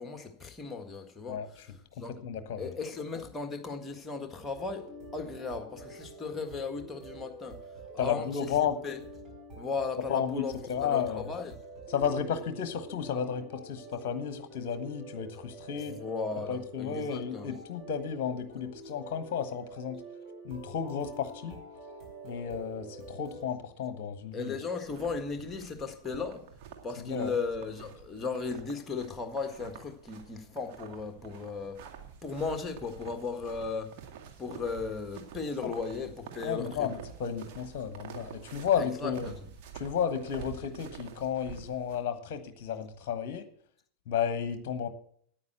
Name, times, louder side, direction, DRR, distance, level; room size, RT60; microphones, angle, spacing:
voice 1, 0.0-2.1 2.6-7.6 7.9-8.5 8.8-9.0 9.6-11.6 15.9-17.6 24.3-26.5 26.8-31.9 32.2-34.0 34.4-36.9 38.8-39.4, left 4 dB, 15° left, 1.7 m, -36 dB
voice 2, 2.2-2.7 8.0-8.7 10.1-11.3 11.9-15.9 16.5-20.0 20.4-21.6 22.2-24.5 27.0-27.3 35.6-35.7 36.4-39.3 39.7-43.5 44.1-44.9, left 7 dB, 45° left, 1.2 m, -32 dB
sound 1, 4.5-23.5, right 1 dB, 25° right, 6.4 m, -47 dB
sound 2, 24.8-42.0, right 7 dB, 45° right, 2.2 m, -48 dB
9.5 x 9.0 x 7.8 m
figure-of-eight pair, 90°, 0 cm